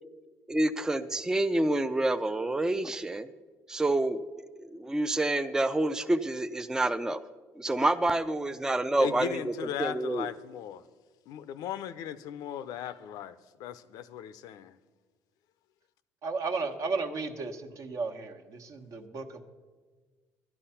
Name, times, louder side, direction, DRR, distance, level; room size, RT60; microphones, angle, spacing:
voice 1, 0.5-3.3 3.7-4.2 4.6-7.2 7.6-9.5 9.8-10.3, right 2 dB, 10° right, 0.4 m, -28 dB
voice 2, 9.0-10.8 11.3-14.8, left 10 dB, 75° left, 0.6 m, -37 dB
voice 3, 16.2-19.4, right 4 dB, 55° right, 1.2 m, -34 dB
12.5 x 10.0 x 5.7 m
supercardioid pair, 90°, 7 cm